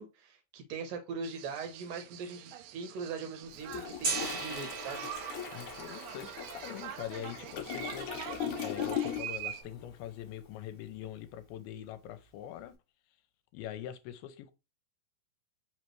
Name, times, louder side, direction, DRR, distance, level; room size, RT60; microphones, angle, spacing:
voice 1, 0.0-5.1, right 5 dB, 75° right, 2.5 m, -41 dB
sound 1, 1.2-9.6, right 11 dB, 90° right, 1.8 m, -45 dB
Toilet flush, 3.5-9.5 9.8-10.0, left 9 dB, 70° left, 1.9 m, -39 dB
Gong, 4.0-9.9, right 4 dB, 40° right, 2.0 m, -41 dB
voice 2, 5.5-8.1 8.6-12.7 13.5-14.5, left 11 dB, 85° left, 2.4 m, -43 dB
5.5 x 3.1 x 3.0 m
omnidirectional pair, 4.3 m